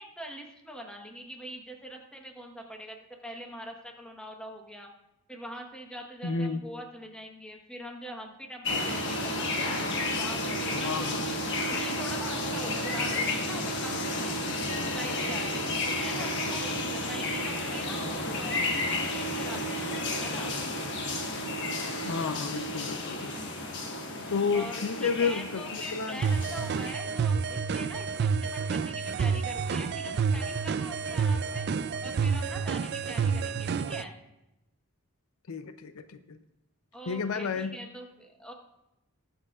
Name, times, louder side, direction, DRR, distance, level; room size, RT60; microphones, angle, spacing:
voice 1, 0.0-4.9 5.3-11.4 11.7-14.3 14.9-18.6 18.9-20.5 24.5-31.7 32.0-34.2 36.9-38.5, equal, 5° left, 2 dB, 1.1 m, -43 dB
voice 2, 6.2-6.6 10.7-11.3 22.1-23.3 24.3-25.6 25.9-26.2 35.5-36.0 36.3-36.4 37.1-37.8, left 5 dB, 70° left, 10 dB, 0.5 m, -31 dB
sound 1, 8.6-26.9, left 1 dB, 50° left, 1.3 m, -32 dB
sound 2, 26.2-34.0, right 5 dB, 45° right, 0.3 m, -29 dB
19.5 x 7.6 x 2.4 m, 0.91 s
head